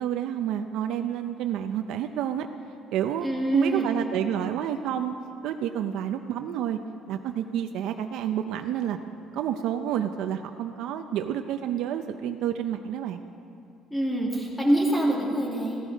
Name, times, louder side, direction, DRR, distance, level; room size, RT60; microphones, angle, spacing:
voice 1, 0.0-2.5 2.9-5.1 5.4-6.8 7.1-9.0 9.3-13.2, right 10 dB, 70° right, 6 dB, 0.6 m, -29 dB
voice 2, 3.2-3.9 13.9-15.8, right 1 dB, 5° left, -2 dB, 2.0 m, -25 dB
16.5 x 14.0 x 5.2 m, 2.5 s
cardioid pair, 165°, 0 cm